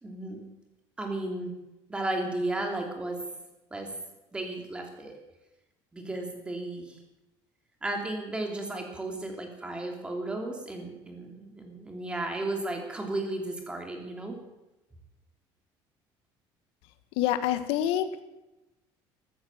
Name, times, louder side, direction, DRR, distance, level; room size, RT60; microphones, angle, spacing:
voice 1, 0.0-0.4 1.0-1.5 1.9-3.2 3.7-3.9 4.3-5.2 5.9-7.0 7.8-14.3, right 2 dB, 10° right, 3 dB, 2.9 m, -34 dB
voice 2, 17.1-18.2, left 11 dB, 90° left, 11 dB, 1.5 m, -27 dB
14.5 x 14.0 x 7.2 m, 0.99 s
cardioid pair, 170°, 9 cm